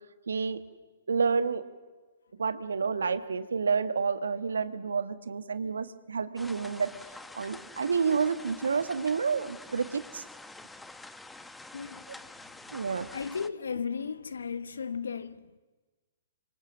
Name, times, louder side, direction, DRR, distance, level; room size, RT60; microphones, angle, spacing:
voice 1, 0.3-0.6 1.1-1.6 2.4-6.9 7.3-10.2 12.7-13.1, right 5 dB, 80° right, 1.4 m, -29 dB
sound 1, 6.4-13.5, left 2 dB, 5° left, 1.1 m, -47 dB
voice 2, 11.7-12.1 12.5-12.6 13.1-15.6, left 6 dB, 75° left, 1.2 m, -35 dB
27.0 x 24.0 x 7.2 m
hypercardioid pair, 125°, 0 cm